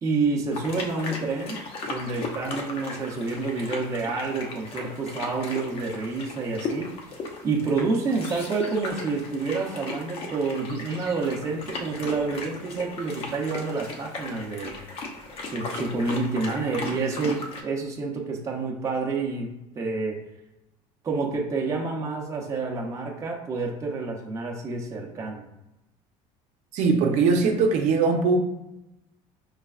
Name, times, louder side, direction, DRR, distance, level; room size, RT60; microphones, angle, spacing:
voice 1, 0.0-6.9 7.4-14.7 15.4-20.2 21.0-25.4, right 4 dB, 20° right, -1 dB, 0.7 m, -28 dB
sound 1, 0.5-17.6, left 3 dB, 45° left, 0.7 m, -37 dB
voice 2, 26.7-28.4, right 4 dB, 60° right, 2 dB, 0.7 m, -21 dB
5.1 x 3.2 x 2.4 m, 0.91 s
cardioid pair, 145°, 14 cm